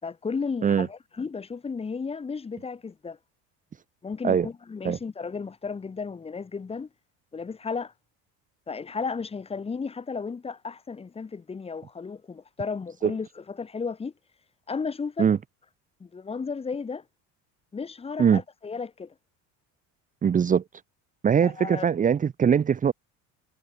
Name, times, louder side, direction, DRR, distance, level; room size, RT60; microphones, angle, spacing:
voice 1, 0.0-3.2 4.0-6.9 7.3-7.9 8.7-14.1 14.7-15.3 16.0-17.0 17.7-19.1 21.4-21.9, left 5 dB, 15° left, 4.5 m, -34 dB
voice 2, 20.2-20.6 21.2-22.9, right 7 dB, 25° right, 1.9 m, -21 dB
cardioid pair, 150°, 34 cm